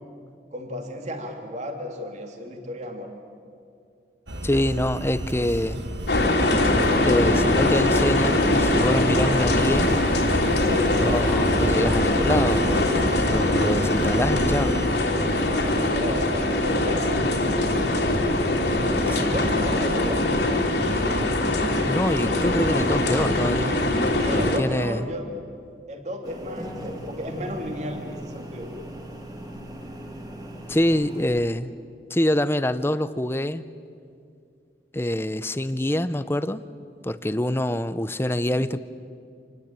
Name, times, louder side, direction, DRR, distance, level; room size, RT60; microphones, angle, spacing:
voice 1, 0.5-3.1 10.5-11.1 15.6-17.2 18.6-20.3 24.2-25.3 25.9-28.7, equal, 40° right, 3 dB, 2.6 m, -33 dB
sound 1, 4.3-14.9, right 1 dB, 80° right, 2.1 m, -32 dB
voice 2, 4.4-5.8 7.0-9.9 10.9-12.9 13.3-14.8 21.9-23.8 24.3-25.1 30.7-31.7 32.1-33.7 34.9-36.6 37.0-38.8, left 1 dB, 15° left, 13 dB, 0.6 m, -25 dB
sound 2, 6.1-24.6, left 1 dB, 75° left, 3.2 m, -22 dB
sound 3, 26.2-31.4, right 1 dB, 20° right, 2.1 m, -39 dB
26.5 x 19.0 x 8.9 m, 2.4 s
head